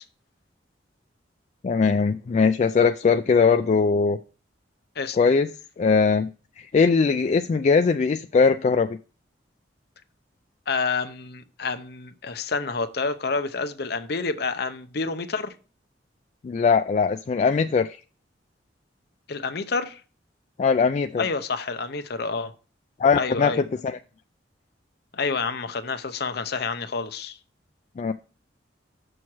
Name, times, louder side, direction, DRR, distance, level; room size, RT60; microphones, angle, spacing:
voice 1, 1.6-4.2 5.2-5.5 5.8-6.3 6.6-8.9 16.4-18.0 20.6-21.2 23.0-24.0 28.0-28.1, left 5 dB, 40° left, 0.3 m, -20 dB
voice 2, 10.7-15.5 19.3-20.0 21.2-22.5 23.1-23.6 25.1-27.4, left 4 dB, 60° left, 0.7 m, -28 dB
7.2 x 6.3 x 4.7 m
head